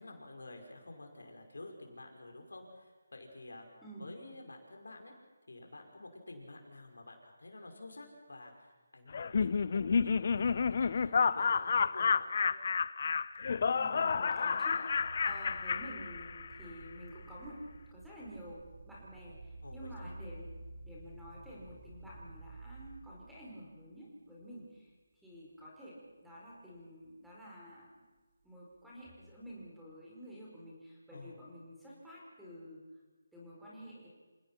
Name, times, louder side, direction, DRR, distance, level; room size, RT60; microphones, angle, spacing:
voice 1, 0.0-5.1 5.5-12.5 19.6-20.2 31.1-31.4, left 2 dB, 80° left, 3 dB, 5.6 m, -50 dB
Laughter, 9.1-16.6, left 5 dB, 45° left, 0.7 m, -30 dB
voice 2, 13.7-20.5 20.8-28.0 28.4-32.8 33.3-34.1, equal, ahead, -6 dB, 4.8 m, -50 dB
sound 1, 14.9-23.7 24.4-24.8 25.3-25.4 29.0-29.7, right 3 dB, 35° right, 4.4 m, -51 dB
28.0 x 18.0 x 5.9 m, 1.3 s
figure-of-eight pair, 165°, 0 cm